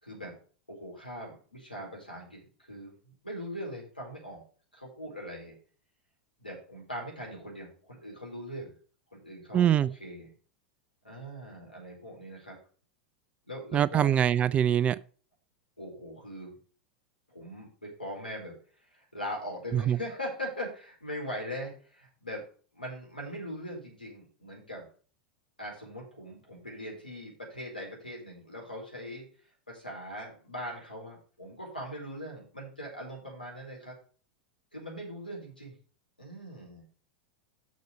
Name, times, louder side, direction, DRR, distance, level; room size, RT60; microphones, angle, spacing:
voice 1, 0.0-0.3 0.7-4.4 4.7-5.5 6.4-8.7 9.1-9.7 10.0-10.3 11.0-12.6 13.5-14.1 15.8-16.5 17.3-18.5 18.8-22.4 22.7-24.8 25.6-29.3 29.7-33.9 34.7-35.7 36.2-36.8, equal, 90° left, 4.3 m, -41 dB
voice 2, 9.5-9.9 13.7-15.0 19.7-20.0, right 10 dB, 25° right, 0.4 m, -23 dB
6.6 x 6.4 x 6.6 m
figure-of-eight pair, 90°, 5 cm